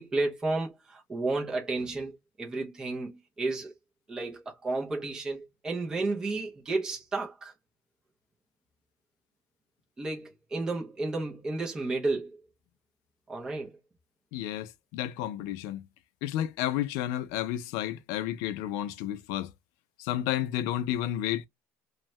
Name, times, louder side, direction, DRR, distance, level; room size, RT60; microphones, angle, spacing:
voice 1, 0.0-3.7 4.1-7.5 10.0-12.4 13.3-13.8, right 3 dB, 10° right, 0.5 m, -32 dB
voice 2, 14.3-15.8 16.2-19.5 20.0-21.4, left 12 dB, 70° left, 0.3 m, -31 dB
2.6 x 2.2 x 3.0 m
cardioid pair, 170°, 6 cm